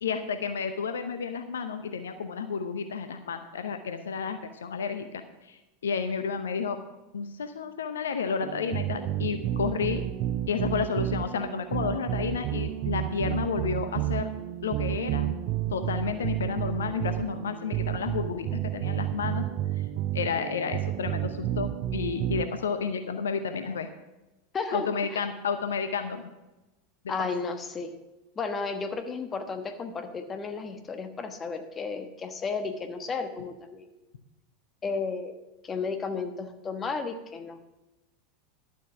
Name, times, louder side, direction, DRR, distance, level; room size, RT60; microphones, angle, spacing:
voice 1, 0.0-6.8 7.1-10.0 10.5-14.3 14.6-15.3 15.7-19.5 19.8-19.9 20.1-23.9 24.7-26.3 27.2-27.3, left 6 dB, 70° left, 9 dB, 0.7 m, -31 dB
sound 1, 8.4-22.4, right 12 dB, 45° right, 0.5 m, -31 dB
voice 2, 24.5-24.9 25.1-25.2 27.1-27.9 28.4-33.9 34.8-35.4 35.6-37.6, left 4 dB, 25° left, 7 dB, 1.2 m, -33 dB
11.5 x 7.3 x 5.9 m, 1.0 s
figure-of-eight pair, 85°, 0 cm